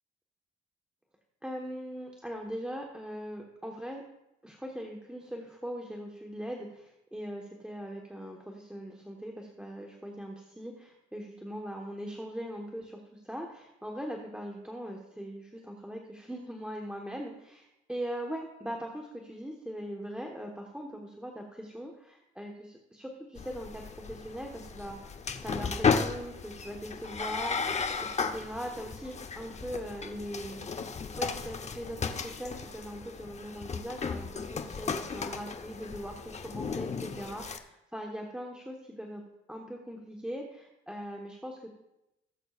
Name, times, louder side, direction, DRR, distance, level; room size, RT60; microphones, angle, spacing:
voice 1, 1.4-4.0 4.4-25.0 25.4-30.6 31.1-39.2 39.5-41.7, equal, 5° right, 0 dB, 1.3 m, -40 dB
sound 1, 23.4-37.6, left 5 dB, 35° left, 0.8 m, -35 dB
18.0 x 8.0 x 2.5 m, 0.90 s
cardioid pair, 90°, 20 cm